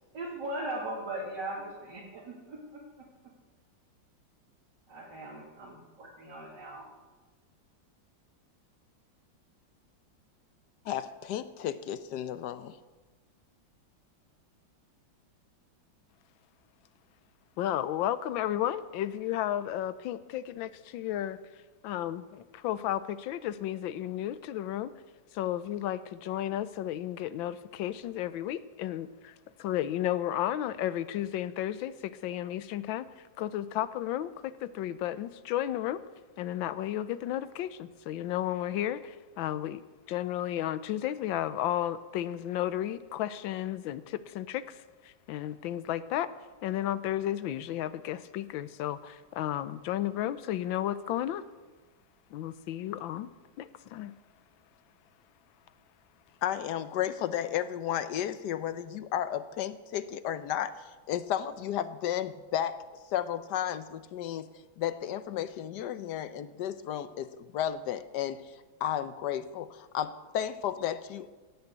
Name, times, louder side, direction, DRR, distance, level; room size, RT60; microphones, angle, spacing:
voice 1, 0.1-2.8 4.9-6.8, right 1 dB, 65° right, -5 dB, 3.0 m, -39 dB
voice 2, 10.8-12.8 56.4-62.8 63.1-64.5 64.8-68.4 68.8-71.3, left 10 dB, 70° left, 13 dB, 1.2 m, -33 dB
voice 3, 17.6-21.4 21.8-24.9 25.3-33.1 33.4-36.0 36.4-39.8 40.1-44.8 45.0-46.3 46.6-51.4 52.3-53.3 53.6-54.1, left 12 dB, 85° left, 14 dB, 1.4 m, -33 dB
16.5 x 6.8 x 8.1 m, 1.3 s
omnidirectional pair, 2.1 m